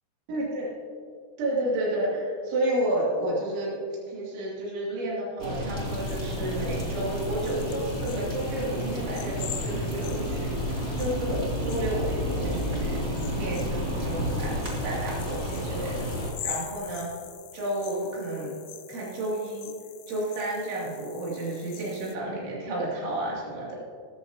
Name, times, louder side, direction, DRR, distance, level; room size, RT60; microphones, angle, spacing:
voice 1, 0.3-0.7 1.4-3.7 4.1-16.1 16.4-17.1 17.5-18.5 18.9-19.8 20.1-23.8, right 1 dB, 70° right, -6 dB, 5.0 m, -31 dB
sound 1, 5.4-16.3, equal, 30° right, 1.2 m, -31 dB
sound 2, 5.8-22.1, left 10 dB, 80° left, 3.1 m, -44 dB
20.0 x 10.5 x 2.9 m, 2.2 s
omnidirectional pair, 5.7 m